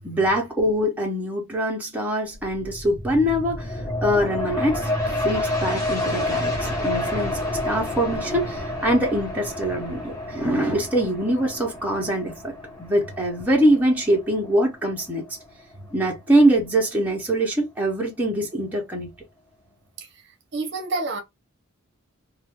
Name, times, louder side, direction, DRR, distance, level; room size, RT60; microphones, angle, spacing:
voice 1, 0.0-4.9 5.2-15.2 15.9-19.1, right 1 dB, 5° right, 0.9 m, -23 dB
sound 1, 2.3-15.6 16.0-16.1, left 1 dB, 15° left, 1.1 m, -29 dB
voice 2, 20.5-21.2, right 3 dB, 50° right, 0.8 m, -29 dB
2.5 x 2.4 x 3.6 m
head